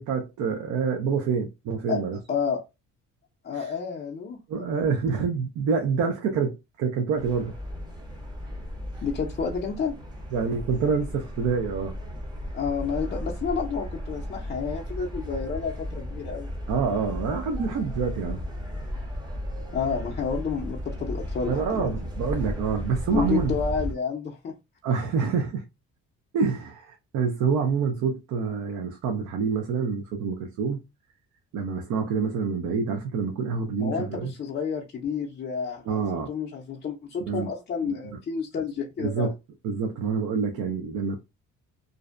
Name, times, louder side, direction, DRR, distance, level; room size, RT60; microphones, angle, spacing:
voice 1, 0.0-2.2 3.5-3.7 4.5-7.5 10.3-11.9 16.7-18.4 21.5-23.5 24.8-25.7 26.3-30.8 31.5-34.3 35.9-36.3 37.3-37.5 37.8-37.9 39.0-39.3 39.6-41.2, right 5 dB, 65° right, 0.5 m, -27 dB
voice 2, 2.3-2.6 3.4-4.7 9.0-9.9 12.5-16.5 19.7-21.9 23.1-24.5 33.8-39.3, left 6 dB, 35° left, 0.5 m, -30 dB
sound 1, 7.2-23.9, equal, 15° right, 0.6 m, -35 dB
2.5 x 2.1 x 2.4 m
cardioid pair, 120°, 30 cm